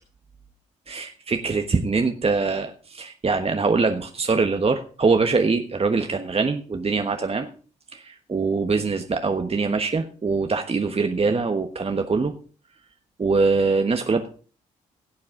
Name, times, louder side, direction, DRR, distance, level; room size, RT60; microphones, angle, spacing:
voice 1, 0.9-7.5 7.9-12.3 13.2-14.3, right 4 dB, 35° right, 6 dB, 1.3 m, -23 dB
17.0 x 8.5 x 3.8 m, 0.38 s
hypercardioid pair, 40°, 18 cm